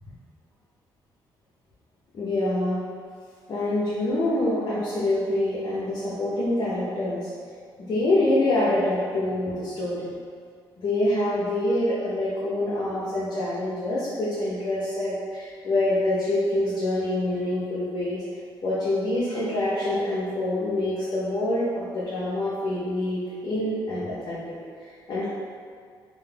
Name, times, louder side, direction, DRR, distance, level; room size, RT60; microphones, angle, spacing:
voice 1, 2.1-2.8 3.5-7.3 7.8-10.1 10.8-18.2 18.6-25.3, left 1 dB, 55° left, -9 dB, 0.6 m, -26 dB
2.3 x 2.1 x 3.2 m, 2.1 s
cardioid pair, 90°, 9 cm